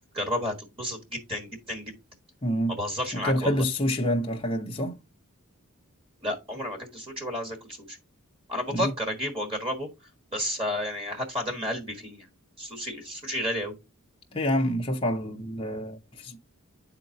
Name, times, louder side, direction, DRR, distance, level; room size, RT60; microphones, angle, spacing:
voice 1, 0.1-1.9 2.8-3.6 6.2-8.0 8.5-9.9 10.3-12.2 12.6-13.7, equal, 25° right, 1.4 m, -31 dB
voice 2, 2.4-2.8 3.1-5.0 8.7-8.9 14.3-16.4, equal, 25° left, 0.6 m, -27 dB
10.5 x 3.9 x 2.7 m
head